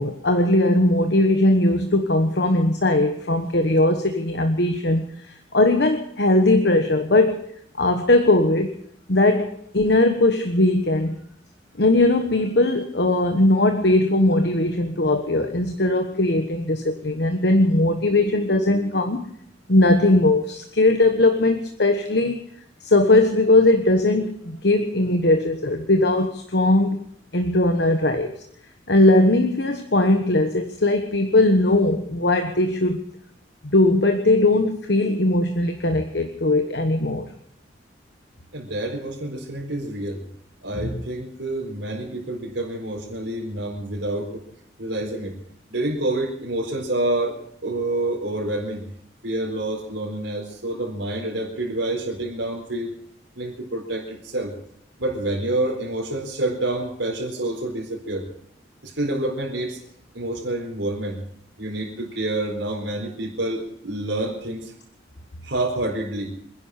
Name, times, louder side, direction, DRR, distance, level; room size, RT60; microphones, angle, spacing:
voice 1, 0.0-5.3 5.5-8.8 9.1-11.2 11.8-19.3 19.7-22.4 22.8-27.0 27.3-28.3 28.9-33.0 33.6-37.3 40.8-40.9, left 2 dB, 65° left, 6 dB, 1.3 m, -19 dB
voice 2, 38.5-40.2 40.6-44.4 44.8-45.4 45.7-48.8 49.2-53.0 53.4-54.5 55.0-58.2 58.8-59.8 60.1-61.2 61.6-64.7 65.4-66.3, right 1 dB, 85° right, -1 dB, 4.4 m, -28 dB
26.0 x 11.0 x 5.1 m, 0.68 s
head